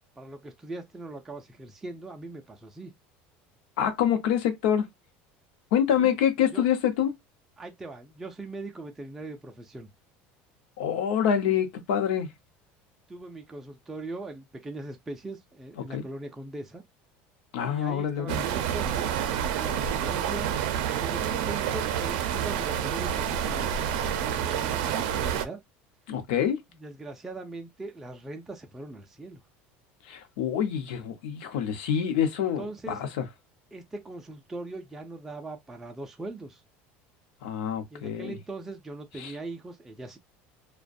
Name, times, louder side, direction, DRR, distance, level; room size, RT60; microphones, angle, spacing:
voice 1, 0.2-2.9 6.0-6.2 6.5-6.7 7.6-9.9 13.1-16.8 17.6-19.1 19.4-20.5 20.9-23.7 24.2-25.6 26.7-29.4 32.4-33.0 33.7-36.6 37.9-40.2, right 2 dB, 5° right, 0.3 m, -40 dB
voice 2, 3.8-4.9 5.7-7.1 10.8-12.3 15.9-16.1 17.5-18.4 26.1-26.6 30.1-33.1 37.4-38.3 39.2-39.3, left 9 dB, 90° left, 0.7 m, -26 dB
sound 1, 18.3-25.4, right 9 dB, 80° right, 0.4 m, -28 dB
2.4 x 2.1 x 2.5 m
cardioid pair, 175°, 5 cm